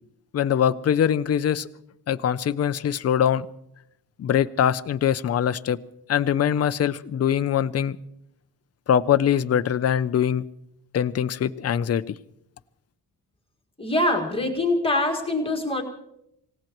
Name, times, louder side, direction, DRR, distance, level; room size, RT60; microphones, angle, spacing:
voice 1, 0.3-1.7 2.1-3.5 4.2-5.8 6.1-8.0 8.9-10.4 10.9-12.2, left 9 dB, 40° left, 14 dB, 0.5 m, -22 dB
voice 2, 13.8-15.8, left 1 dB, 15° left, 2 dB, 1.8 m, -24 dB
26.5 x 17.5 x 3.0 m, 0.80 s
wide cardioid pair, 170°, 39 cm